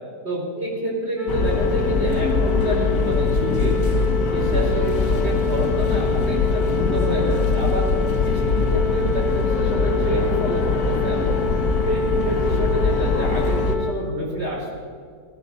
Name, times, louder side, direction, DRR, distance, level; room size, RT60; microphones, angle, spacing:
voice 1, 0.2-3.8 4.3-7.9 8.2-11.4 11.8-14.7, right 1 dB, 40° right, -2 dB, 4.4 m, -28 dB
sound 1, 1.2-13.9, left 4 dB, ahead, 1.0 m, -28 dB
sound 2, 1.3-13.8, left 3 dB, 60° left, 1.5 m, -22 dB
Dog, 2.1-6.3, right 3 dB, 75° right, 5.6 m, -43 dB
18.0 x 12.5 x 5.6 m, 2.1 s
omnidirectional pair, 1.8 m